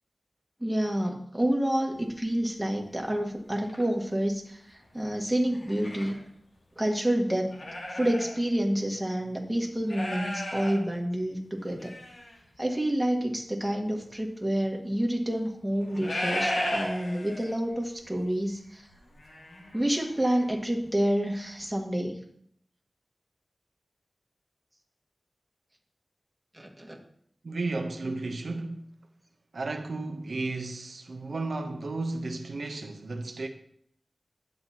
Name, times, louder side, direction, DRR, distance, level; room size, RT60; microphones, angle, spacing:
voice 1, 0.6-6.2 6.8-7.5 7.9-11.9 12.6-18.9 19.7-22.2 26.5-27.0, right 1 dB, 10° right, 1.6 m, -28 dB
sound 1, 2.0-2.2 2.8-2.9 3.5-3.8 5.4-6.2 6.8-6.9 7.4-8.4 8.7-8.8 9.8-10.8 11.6-12.4 14.0-14.1 15.7-17.7 18.0-18.2 18.5-20.5 20.8-20.9, left 1 dB, 85° left, 2.0 m, -35 dB
voice 2, 27.4-28.8 29.5-33.5, right 3 dB, 75° right, 0.8 m, -33 dB
10.5 x 7.8 x 2.9 m
wide cardioid pair, 60°, 0 cm